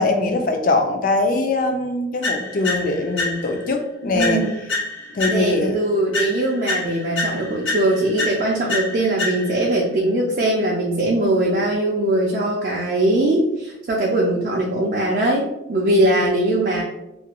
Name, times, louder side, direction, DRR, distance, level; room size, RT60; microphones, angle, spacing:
voice 1, 0.0-4.4 5.1-5.8, left 2 dB, 45° left, 5 dB, 0.3 m, -21 dB
sound 1, 2.2-3.7 4.2-5.7 6.1-9.7, left 2 dB, 85° left, 0.7 m, -28 dB
voice 2, 4.1-4.5 5.3-16.8, right 1 dB, 45° right, -2 dB, 0.3 m, -21 dB
2.4 x 2.2 x 2.9 m, 0.89 s
head